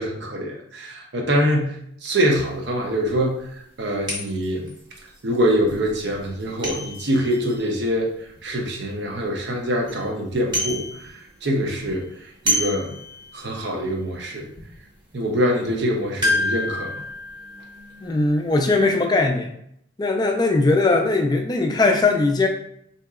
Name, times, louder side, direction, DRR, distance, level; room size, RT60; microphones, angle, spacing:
voice 1, 0.0-3.4 3.8-4.7 5.2-8.1 8.4-10.8 11.1-12.0 12.4-13.0 13.3-14.5 15.1-16.9, equal, 60° right, 1 dB, 0.7 m, -24 dB
sound 1, 2.6-2.7 3.2-3.3 4.1-8.8 9.2-9.3 9.6-10.0 10.3-11.4 11.6-13.6 14.0-14.1 14.6-14.8 16.2-18.6 18.9-19.0, left 1 dB, 25° right, 0.8 m, -29 dB
voice 2, 18.0-19.5 20.0-22.5, left 3 dB, 20° left, 3 dB, 0.3 m, -19 dB
3.8 x 2.8 x 2.4 m, 0.72 s
head